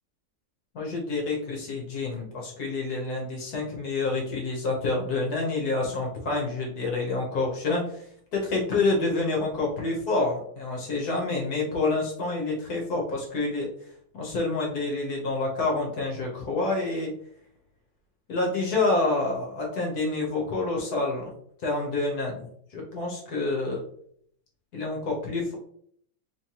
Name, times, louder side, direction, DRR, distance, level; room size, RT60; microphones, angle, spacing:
voice 1, 0.7-13.7 14.1-17.1 18.3-21.3 21.6-23.8 24.7-25.5, left 3 dB, 60° left, -1 dB, 1.3 m, -28 dB
3.9 x 3.1 x 2.8 m, 0.65 s
omnidirectional pair, 2.1 m